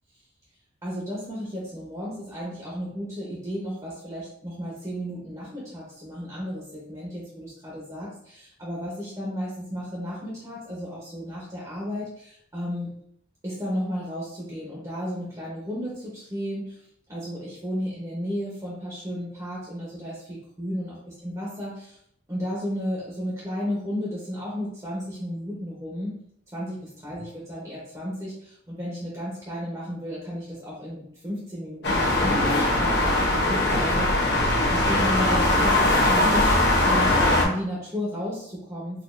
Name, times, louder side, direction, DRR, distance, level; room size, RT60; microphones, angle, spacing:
voice 1, 0.8-12.9 13.4-16.8 17.1-21.0 21.2-22.0 22.3-26.2 26.5-32.4 32.8-34.1 34.7-37.2 37.4-39.0, equal, 20° right, -6 dB, 0.9 m, -33 dB
sound 1, 31.8-37.4, left 1 dB, 60° left, 0.8 m, -21 dB
4.1 x 2.5 x 2.6 m, 0.69 s
head